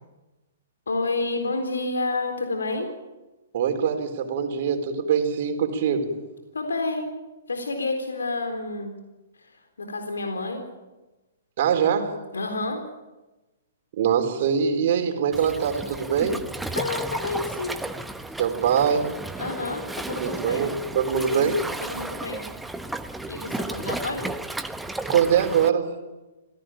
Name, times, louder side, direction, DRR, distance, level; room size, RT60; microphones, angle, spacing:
voice 1, 0.9-2.9 6.5-7.1 7.5-8.9 9.4-10.6 12.3-12.8 16.7-17.8 19.4-20.7 21.3-21.5 21.8-22.4 23.3-24.3, left 3 dB, 75° left, 5 dB, 3.9 m, -29 dB
voice 2, 3.5-6.1 11.6-12.2 13.9-16.4 18.4-19.1 20.2-21.6 25.0-26.0, right 7 dB, 50° right, 6 dB, 4.1 m, -23 dB
Waves surf, 15.3-25.7, right 2 dB, 5° right, 1.1 m, -33 dB
26.5 x 17.5 x 9.0 m, 1.1 s
figure-of-eight pair, 120°, 0 cm